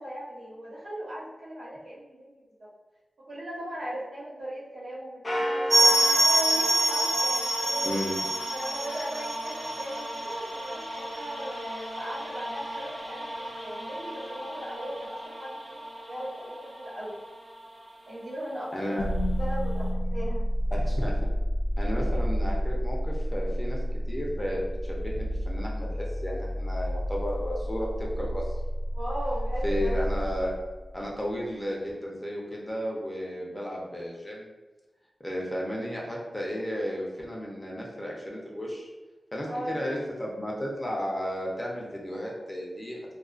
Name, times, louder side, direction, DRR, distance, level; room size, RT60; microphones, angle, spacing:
voice 1, 0.0-2.3 3.3-7.9 8.5-17.2 18.1-19.1 19.4-20.4 28.9-29.9 33.4-33.6 39.5-40.0, equal, 75° right, -7 dB, 0.9 m, -38 dB
sound 1, 5.2-8.0, equal, 45° left, 0.7 m, -33 dB
sound 2, 5.7-16.2 16.5-16.6 16.8-17.0 17.6-17.7, right 1 dB, 45° right, 0.5 m, -28 dB
voice 2, 7.8-8.2 18.7-19.1 20.7-21.1 21.8-28.5 29.6-30.5 30.9-34.5 35.2-38.9 39.3-43.0, equal, 15° left, -3 dB, 0.6 m, -33 dB
sound 3, 19.0-31.1, equal, 80° left, 0.3 m, -30 dB
2.4 x 2.3 x 2.4 m, 1.2 s
wide cardioid pair, 90°, 0 cm